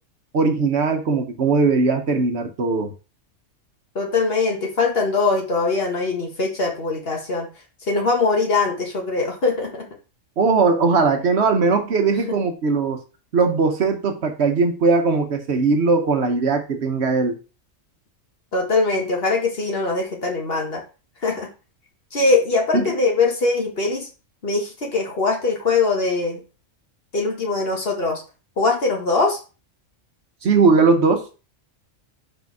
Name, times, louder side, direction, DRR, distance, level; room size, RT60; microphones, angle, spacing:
voice 1, 0.3-2.9 10.4-13.0 13.3-17.4 22.7-22.9 30.4-31.2, right 4 dB, 60° right, 6 dB, 1.1 m, -19 dB
voice 2, 3.9-7.5 7.9-9.9 18.5-20.8 21.2-21.5 22.1-24.1 24.4-26.4 27.1-28.2 28.6-29.4, left 3 dB, 50° left, 2 dB, 1.6 m, -22 dB
5.1 x 4.9 x 4.7 m, 0.33 s
omnidirectional pair, 1.3 m